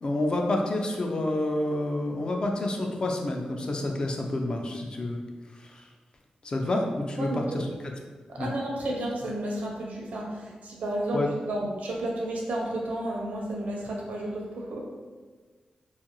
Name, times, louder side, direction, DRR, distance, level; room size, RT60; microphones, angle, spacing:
voice 1, 0.0-5.2 5.6-5.8 6.4-7.7 8.4-8.5 11.1-11.3, left 1 dB, 35° left, 2 dB, 0.3 m, -28 dB
voice 2, 7.2-7.7 8.3-14.8, right 1 dB, 85° right, -1 dB, 0.5 m, -32 dB
2.5 x 2.2 x 2.9 m, 1.4 s
wide cardioid pair, 125°, 2 cm